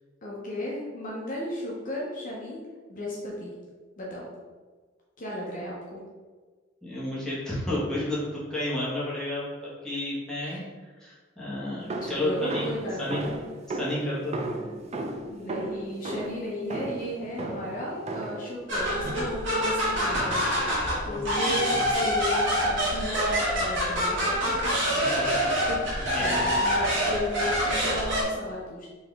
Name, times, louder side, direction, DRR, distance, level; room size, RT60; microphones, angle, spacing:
voice 1, 0.2-2.6 2.9-3.5 4.0-4.3 5.2-6.0 10.4-10.6 12.0-13.4 14.6-15.0 15.3-25.8 26.1-28.9, left 1 dB, 45° left, -4 dB, 0.7 m, -35 dB
voice 2, 6.8-9.5 9.8-12.6 13.0-13.2 13.7-14.4 21.0-21.9 24.9-25.3 26.1-26.6, left 1 dB, 5° left, -9 dB, 1.5 m, -32 dB
sound 1, 11.9-18.5 19.0-19.5 20.1-20.6, right 2 dB, 35° right, 0.4 m, -35 dB
sound 2, 18.7-28.2, equal, 70° right, 1.5 m, -26 dB
4.3 x 2.9 x 3.4 m, 1.4 s
head